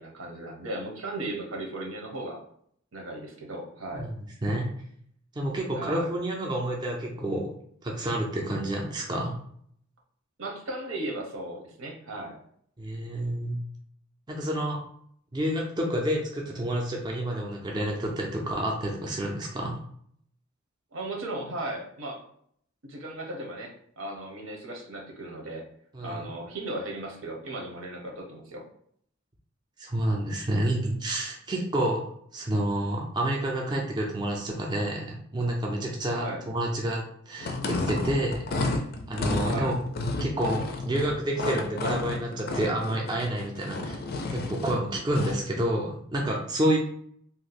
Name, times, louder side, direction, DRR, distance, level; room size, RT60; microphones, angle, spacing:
voice 1, 0.0-2.4 2.9-4.1 5.8-6.1 10.4-12.4 20.9-22.2 22.8-25.6 26.0-28.6 36.1-36.4 39.4-39.7, right 1 dB, 85° right, 1 dB, 0.9 m, -36 dB
voice 2, 5.4-7.5 7.8-9.4 12.8-13.6 14.3-14.8 15.3-19.8 25.9-26.3 29.8-32.0 32.3-38.8 39.1-39.8 40.2-44.0 44.3-46.8, right 1 dB, 20° right, -1 dB, 0.4 m, -29 dB
sound 1, 37.4-45.5, left 2 dB, 45° left, 0.4 m, -31 dB
2.7 x 2.1 x 4.0 m, 0.65 s
head